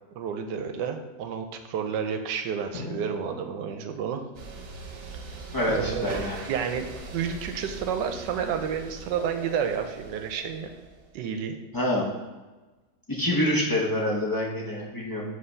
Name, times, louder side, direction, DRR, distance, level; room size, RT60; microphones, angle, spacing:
voice 1, 0.1-4.2 5.7-6.9 7.1-10.7 11.1-11.5, right 7 dB, 85° right, 7 dB, 1.3 m, -30 dB
Drum, 2.7-5.2, left 4 dB, 70° left, 1.4 m, -44 dB
sound 1, 3.0-4.4 5.7-7.9 9.1-11.3, right 1 dB, 20° right, 1.0 m, -44 dB
sound 2, 4.3-11.2, right 3 dB, 65° right, 1.2 m, -42 dB
voice 2, 5.5-6.4 11.7-12.1 13.1-15.2, left 1 dB, 25° left, -4 dB, 0.4 m, -26 dB
5.6 x 3.3 x 5.3 m, 1.2 s
omnidirectional pair, 1.9 m